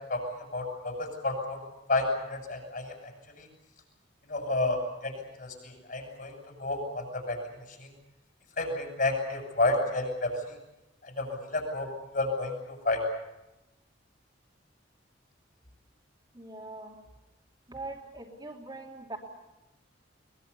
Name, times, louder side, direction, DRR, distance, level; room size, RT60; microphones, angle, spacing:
voice 1, 0.5-1.6 1.9-3.1 3.4-3.5 4.3-5.1 5.4-6.3 6.6-7.4 7.8-7.9 8.6-10.6 11.0-13.0, left 2 dB, 45° left, 3 dB, 7.1 m, -30 dB
voice 2, 16.3-17.0 17.7-19.2, right 2 dB, 20° right, -1 dB, 3.0 m, -42 dB
23.0 x 21.5 x 8.4 m, 0.97 s
head